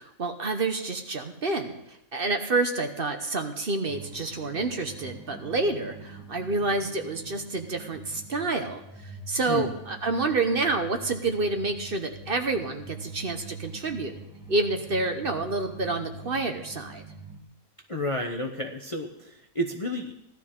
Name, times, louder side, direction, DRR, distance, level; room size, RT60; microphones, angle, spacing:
voice 1, 0.0-14.1 14.5-17.0, right 3 dB, 45° right, 5 dB, 1.1 m, -28 dB
sound 1, 3.9-17.4, right 3 dB, 5° right, 1.8 m, -44 dB
voice 2, 9.5-9.8 17.9-20.1, left 1 dB, 30° left, 2 dB, 0.7 m, -31 dB
16.5 x 12.0 x 3.7 m, 0.82 s
omnidirectional pair, 1.5 m